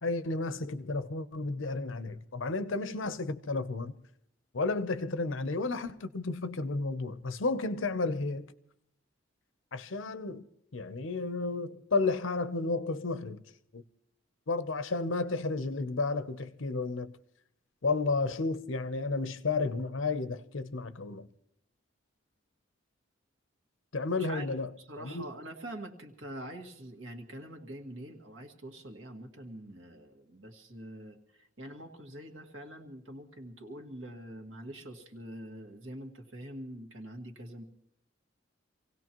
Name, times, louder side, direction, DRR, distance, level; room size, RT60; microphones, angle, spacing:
voice 1, 0.0-3.9 4.5-8.5 9.7-10.5 10.7-13.4 13.7-13.8 14.5-17.1 17.8-21.3 23.9-24.7 25.0-25.3, left 3 dB, 75° left, 0.8 m, -32 dB
voice 2, 24.2-37.6, right 1 dB, 75° right, 1.9 m, -45 dB
26.5 x 17.0 x 3.0 m
head